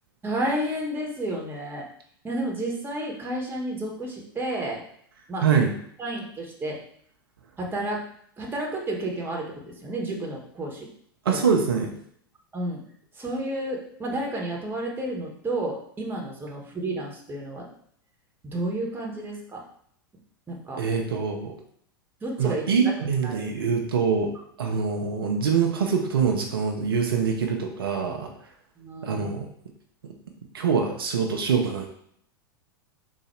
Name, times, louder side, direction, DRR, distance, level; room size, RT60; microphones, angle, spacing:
voice 1, 0.2-1.8 2.2-4.8 5.3-5.5 6.0-6.8 7.6-8.0 8.4-10.9 11.3-11.4 12.5-12.8 13.2-17.7 18.4-19.6 20.5-20.8 22.2-22.6 23.2-23.5 28.8-29.3, right 1 dB, 15° right, -1 dB, 1.3 m, -31 dB
voice 2, 5.4-5.7 11.2-11.9 20.8-21.6 22.4-28.3 29.0-29.5 30.5-31.9, right 6 dB, 75° right, 2 dB, 0.7 m, -24 dB
4.0 x 2.7 x 4.4 m, 0.65 s
hypercardioid pair, 95°, 12 cm